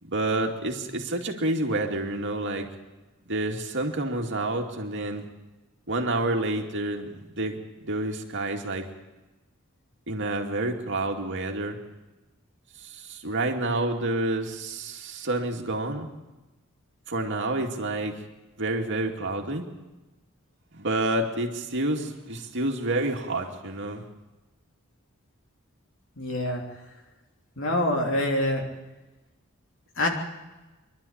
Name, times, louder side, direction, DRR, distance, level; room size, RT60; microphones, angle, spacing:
voice 1, 0.0-2.7 3.3-5.3 5.9-8.8 10.1-11.8 12.8-16.1 17.1-18.2 18.6-19.6 20.7-24.0, right 2 dB, 60° right, 2 dB, 2.5 m, -29 dB
voice 2, 26.2-26.6 27.6-28.6 30.0-30.1, left 1 dB, 65° left, 1 dB, 3.3 m, -25 dB
24.5 x 12.0 x 8.8 m, 1.1 s
head